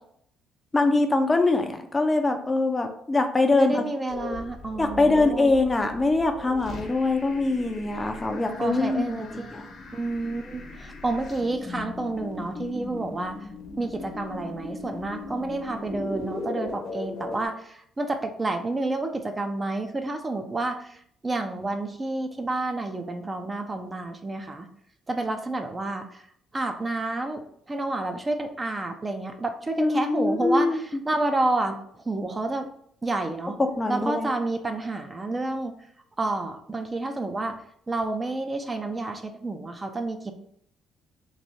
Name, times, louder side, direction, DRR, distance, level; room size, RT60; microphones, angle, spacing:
voice 1, 0.7-3.8 4.8-9.6 29.8-31.0 33.6-34.3, left 2 dB, 25° left, 5 dB, 0.5 m, -23 dB
voice 2, 3.5-5.5 8.6-9.5 9.9-13.4 13.8-21.0 21.2-24.7 25.1-26.2 26.5-30.7 31.1-31.8 32.1-32.7 33.0-33.6 33.9-35.7 36.2-37.6 37.9-40.3, right 2 dB, 25° right, 5 dB, 0.5 m, -29 dB
sound 1, 4.1-17.5, left 3 dB, 55° left, 0.9 m, -38 dB
3.1 x 2.6 x 4.1 m, 0.66 s
supercardioid pair, 70°, 0 cm